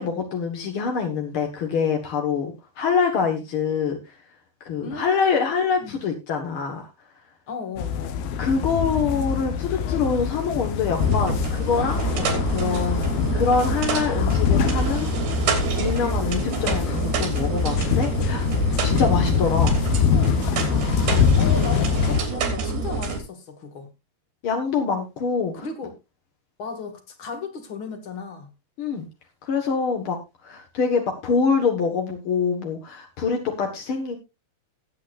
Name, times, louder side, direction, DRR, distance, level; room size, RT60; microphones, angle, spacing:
voice 1, 0.0-4.0 4.6-6.9 8.4-13.0 13.3-15.1 15.6-18.5 18.8-19.8 24.4-25.6 28.8-29.1 29.4-30.2 30.4-34.2, left 5 dB, 55° left, 1.5 m, -25 dB
voice 2, 4.8-6.0 7.5-8.3 21.4-23.9 25.5-25.9 26.6-28.5, left 4 dB, 40° left, 2.2 m, -35 dB
sound 1, 7.8-22.2, left 7 dB, 70° left, 2.8 m, -24 dB
sound 2, 11.0-23.2, right 4 dB, 75° right, 4.9 m, -27 dB
19.0 x 8.7 x 2.5 m
omnidirectional pair, 4.5 m